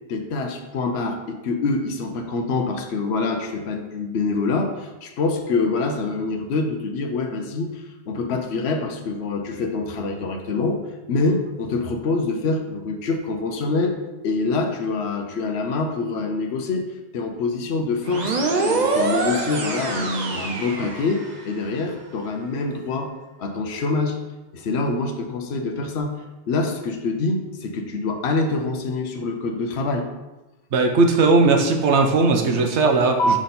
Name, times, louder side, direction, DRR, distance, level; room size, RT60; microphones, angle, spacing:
voice 1, 0.1-10.8 11.1-14.0 14.2-18.4 18.7-23.1 23.4-24.2 24.5-26.2 26.5-30.1 32.9-33.4, left 3 dB, 70° left, 4 dB, 1.0 m, -25 dB
sound 1, 18.1-21.6, right 3 dB, 45° right, 0.8 m, -25 dB
voice 2, 30.7-33.4, right 3 dB, 80° right, 3 dB, 1.1 m, -18 dB
6.1 x 5.3 x 4.3 m, 1.1 s
omnidirectional pair, 1.2 m